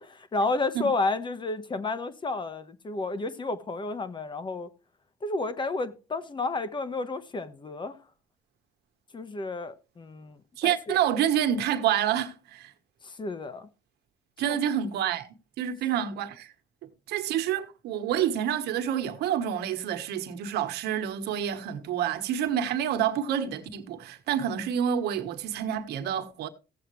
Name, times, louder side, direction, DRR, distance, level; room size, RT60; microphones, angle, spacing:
voice 1, 0.0-4.7 5.2-8.0 9.1-11.0 13.0-13.7 14.4-14.6, left 3 dB, 30° left, 1.2 m, -31 dB
voice 2, 10.6-12.7 14.4-16.5 17.1-26.5, right 9 dB, 75° right, 1.3 m, -28 dB
16.5 x 7.6 x 3.2 m
cardioid pair, 110°, 17 cm